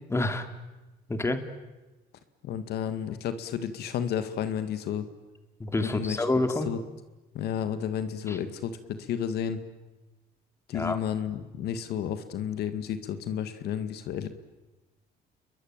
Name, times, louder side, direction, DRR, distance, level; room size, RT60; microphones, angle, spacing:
voice 1, 0.1-0.5 1.1-1.4 5.6-6.7 8.3-8.4 10.7-11.0, left 2 dB, 15° left, 8 dB, 2.6 m, -27 dB
voice 2, 2.4-5.1 5.8-6.2 6.7-6.8 7.3-9.6 10.7-14.3, left 8 dB, 75° left, 10 dB, 1.9 m, -32 dB
29.5 x 22.5 x 9.0 m, 1.1 s
cardioid pair, 110°, 17 cm